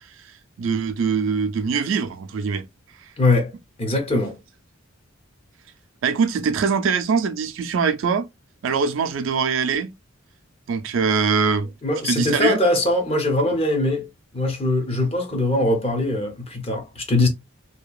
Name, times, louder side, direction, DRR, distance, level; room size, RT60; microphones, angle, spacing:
voice 1, 0.2-2.7 6.0-8.3 8.6-9.9 10.7-11.7 12.0-12.6, right 5 dB, 70° right, 0.4 m, -22 dB
voice 2, 3.2-3.5 3.8-4.4 11.8-14.1 14.3-17.3, left 2 dB, 30° left, 0.6 m, -21 dB
2.7 x 2.2 x 2.3 m
head